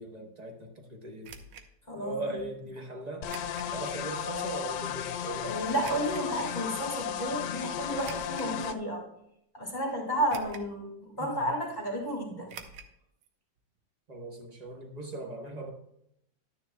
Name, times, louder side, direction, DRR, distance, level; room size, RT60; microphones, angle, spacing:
voice 1, 0.0-1.4 1.9-3.3 3.7-5.8 11.1-11.5 14.1-15.7, right 1 dB, 30° right, 2 dB, 0.9 m, -39 dB
sound 1, 1.2-1.7 3.2-3.7 4.3-4.4 5.8-6.3 8.0-8.6 9.2-9.3 10.3-10.8 11.0-11.1 12.5-12.9 13.2-13.3 13.6-13.7, right 6 dB, 75° right, 1.4 m, -46 dB
voice 2, 1.9-2.4 5.4-9.0 9.5-12.5, right 1 dB, 25° left, -2 dB, 2.0 m, -32 dB
sound 2, 3.2-8.8, left 9 dB, 75° left, 1.2 m, -35 dB
11.5 x 9.6 x 2.2 m, 0.77 s
omnidirectional pair, 2.0 m